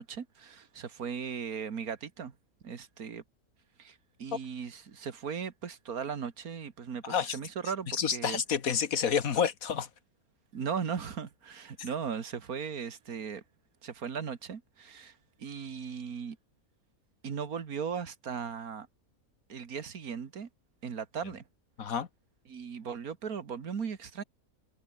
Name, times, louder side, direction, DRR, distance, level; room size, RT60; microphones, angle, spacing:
voice 1, 0.0-2.3 2.6-3.2 3.8-8.4 10.5-13.4 13.8-16.4 17.2-18.9 19.5-20.5 20.8-21.4 22.5-24.2, right 6 dB, 85° right, 2.2 m, -37 dB
voice 2, 7.9-9.9 21.8-22.1, left 7 dB, 70° left, 1.9 m, -29 dB
omnidirectional pair, 1.5 m